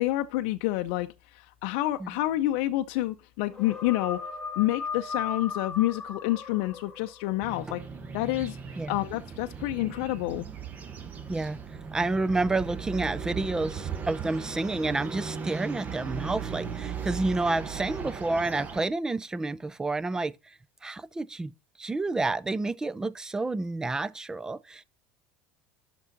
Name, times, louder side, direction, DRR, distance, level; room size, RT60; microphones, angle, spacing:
voice 1, 0.0-4.2 4.6-7.8 8.1-8.6 8.9-10.5, left 16 dB, 70° left, 0.5 m, -28 dB
sound 1, 3.5-7.6, left 5 dB, 10° left, 1.9 m, -37 dB
sound 2, 7.4-18.9, right 6 dB, 25° right, 0.9 m, -37 dB
voice 2, 11.9-24.8, right 2 dB, 10° right, 0.4 m, -30 dB
8.1 x 6.1 x 3.9 m
supercardioid pair, 130°, 6 cm